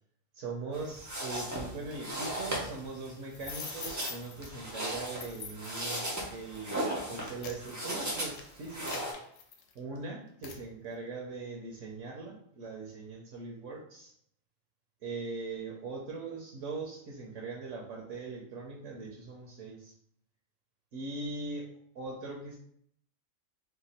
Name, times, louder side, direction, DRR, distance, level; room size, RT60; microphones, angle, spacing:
voice 1, 0.3-9.0 9.7-14.1 15.0-19.9 20.9-21.7 21.9-22.6, right 3 dB, 70° right, -1 dB, 1.0 m, -41 dB
sound 1, 0.7-9.1, right 1 dB, 25° right, 0.4 m, -37 dB
sound 2, 3.3-4.5 5.1-5.8 6.5-6.7 7.1-10.0 10.4-10.6, left 6 dB, 75° left, 0.9 m, -44 dB
2.9 x 2.2 x 4.0 m, 0.67 s
omnidirectional pair, 1.3 m